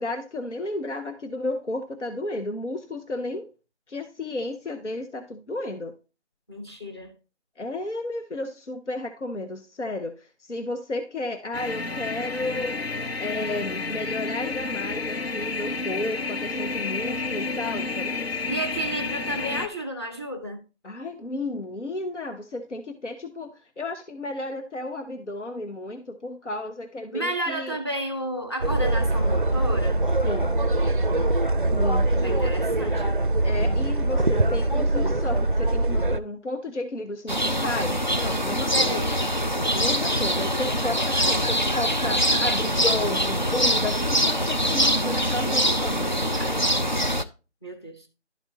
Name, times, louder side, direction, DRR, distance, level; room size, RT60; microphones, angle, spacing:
voice 1, 0.0-3.5 3.9-5.9 7.6-12.8 13.2-18.4 20.8-27.8 30.2-30.5 31.7-32.3 33.4-38.9 39.7-46.6, left 2 dB, 80° left, 1.1 m, -32 dB
voice 2, 6.5-7.1 18.5-20.6 27.1-30.0 32.2-33.4 38.7-39.2 47.6-48.0, equal, 20° left, 0.9 m, -32 dB
sound 1, 11.5-19.7, left 4 dB, 60° left, 0.8 m, -30 dB
sound 2, 28.6-36.2, right 2 dB, 45° right, 0.4 m, -23 dB
sound 3, 37.3-47.2, equal, 40° left, 0.4 m, -24 dB
12.0 x 4.4 x 2.6 m
figure-of-eight pair, 165°, 36 cm